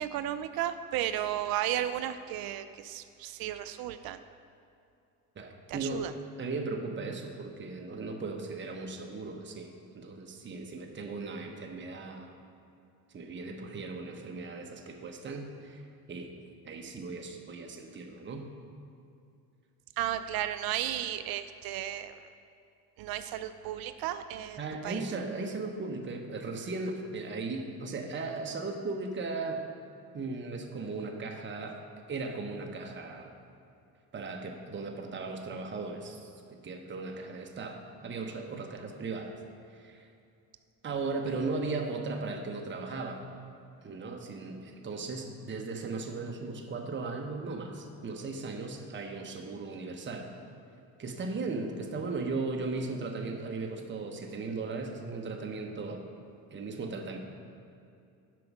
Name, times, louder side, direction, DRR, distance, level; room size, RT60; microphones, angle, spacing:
voice 1, 0.0-4.2 5.7-6.1 20.0-22.3 23.0-24.6 24.8-25.0, right 12 dB, 65° right, 11 dB, 0.5 m, -34 dB
voice 2, 5.4-6.1 6.4-12.3 13.1-15.8 16.1-16.3 16.6-18.5 24.6-29.6 30.1-31.8 32.1-33.3 34.1-36.3 36.6-39.3 39.7-40.1 40.8-43.2 43.8-50.3 51.0-56.1 56.5-57.2, right 3 dB, 30° right, 2 dB, 1.0 m, -37 dB
7.6 x 5.3 x 6.1 m, 2.5 s
supercardioid pair, 80°, 40 cm